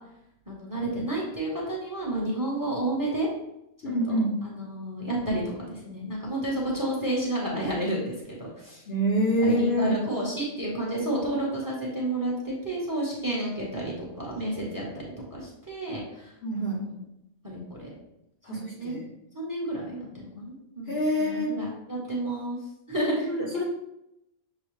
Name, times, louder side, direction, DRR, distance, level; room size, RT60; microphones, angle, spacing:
voice 1, 0.5-3.3 4.1-5.4 5.7-8.8 9.2-15.0 15.3-17.0 17.4-17.9 18.5-19.0 19.3-22.6 22.9-23.2, right 1 dB, 15° right, -3 dB, 0.8 m, -31 dB
voice 2, 3.8-4.4 8.9-10.0 16.4-16.8 18.4-19.1 20.9-21.6 23.0-23.6, equal, 55° left, -2 dB, 0.8 m, -26 dB
6.6 x 2.3 x 3.1 m, 0.84 s
omnidirectional pair, 1.5 m